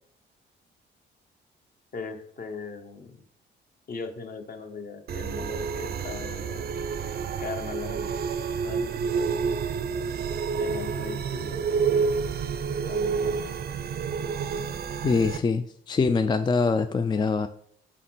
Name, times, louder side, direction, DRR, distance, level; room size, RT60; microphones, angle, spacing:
voice 1, 1.9-3.2 3.9-6.7 7.4-8.4 8.6-9.5 10.5-12.1 12.9-13.5, left 5 dB, 45° left, 1.0 m, -39 dB
sound 1, 5.1-15.4, right 6 dB, 50° right, 0.6 m, -29 dB
voice 2, 15.0-17.5, left 4 dB, 20° left, 0.3 m, -24 dB
5.1 x 4.1 x 5.9 m
cardioid pair, 90°, 20 cm